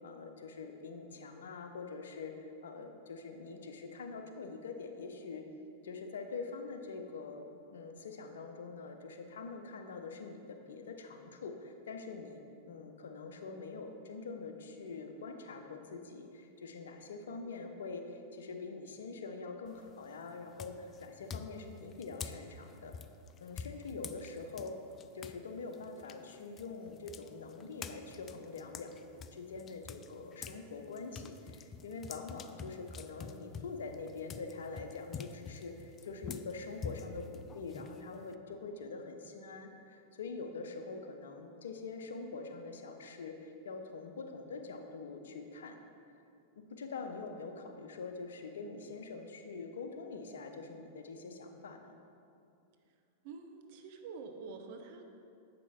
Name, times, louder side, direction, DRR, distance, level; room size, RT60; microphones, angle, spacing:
voice 1, 0.0-5.4 5.8-7.4 7.7-12.4 12.7-22.9 23.4-24.8 25.1-45.8 46.6-52.0, left 4 dB, 80° left, 5 dB, 0.7 m, -44 dB
sound 1, 19.7-20.0 20.6-25.4 25.7-30.6 30.9-38.3, left 6 dB, 30° left, 0.3 m, -46 dB
voice 2, 53.2-55.0, right 4 dB, 60° right, 5 dB, 0.8 m, -47 dB
7.9 x 5.3 x 4.3 m, 2.5 s
hypercardioid pair, 105°, 0 cm